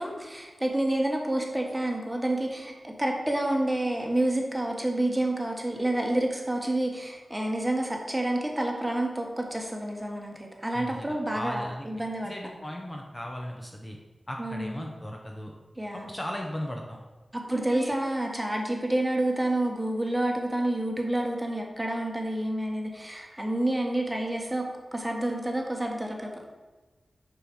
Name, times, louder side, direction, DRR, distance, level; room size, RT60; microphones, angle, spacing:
voice 1, 0.0-12.3 14.4-14.8 15.8-16.1 17.3-26.3, right 1 dB, 10° right, 1 dB, 1.4 m, -29 dB
voice 2, 10.7-11.9 12.2-14.0 14.3-15.5 15.9-17.0 17.5-17.9, equal, 20° left, 0 dB, 0.9 m, -37 dB
6.7 x 5.6 x 4.7 m, 1.2 s
cardioid pair, 60°, 0 cm